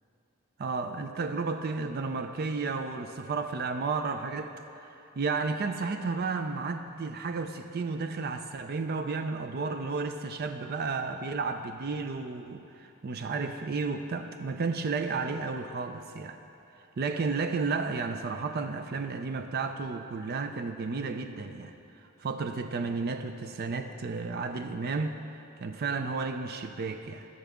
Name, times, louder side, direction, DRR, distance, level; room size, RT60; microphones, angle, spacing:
voice 1, 0.6-16.4 17.0-21.7 22.2-27.3, right 4 dB, 45° right, 7 dB, 0.4 m, -32 dB
15.5 x 6.6 x 3.5 m, 2.8 s
head